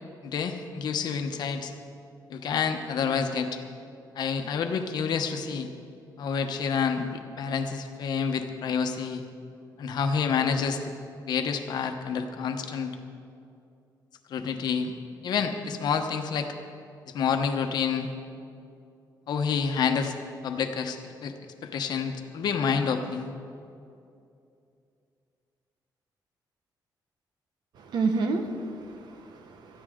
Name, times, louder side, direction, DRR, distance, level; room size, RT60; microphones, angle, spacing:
voice 1, 0.2-1.7 2.3-3.6 4.2-5.7 6.2-9.2 9.8-10.9 11.3-12.9 14.3-14.9 15.2-16.5 17.1-18.1 19.3-20.1 20.4-21.3 21.6-23.3, left 6 dB, 70° left, 6 dB, 1.1 m, -28 dB
voice 2, 27.8-29.8, right 3 dB, 75° right, 6 dB, 1.3 m, -30 dB
19.0 x 14.0 x 3.8 m, 2.6 s
wide cardioid pair, 170°, 7 cm